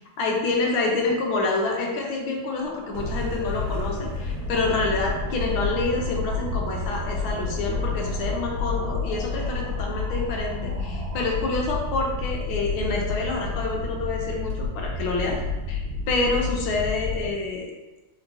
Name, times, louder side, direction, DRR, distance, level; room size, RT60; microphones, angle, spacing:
voice 1, 0.2-15.4 15.7-15.8 16.1-17.7, left 3 dB, 85° left, 0 dB, 1.6 m, -27 dB
sound 1, 2.6-11.3, right 1 dB, 65° right, 0.6 m, -42 dB
sound 2, 2.9-17.3, left 3 dB, 90° right, 1.8 m, -30 dB
4.4 x 4.0 x 2.7 m, 1.1 s
omnidirectional pair, 2.2 m